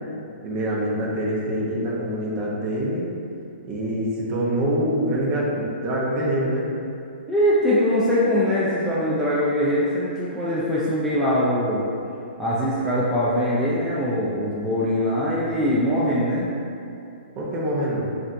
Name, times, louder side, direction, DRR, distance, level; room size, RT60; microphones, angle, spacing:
voice 1, 0.4-3.1 3.6-6.6 17.4-18.0, right 1 dB, 30° right, -4 dB, 0.8 m, -25 dB
voice 2, 7.3-11.9 12.4-16.5, equal, ahead, -10 dB, 0.5 m, -22 dB
7.2 x 2.6 x 2.6 m, 2.6 s
hypercardioid pair, 145°, 6 cm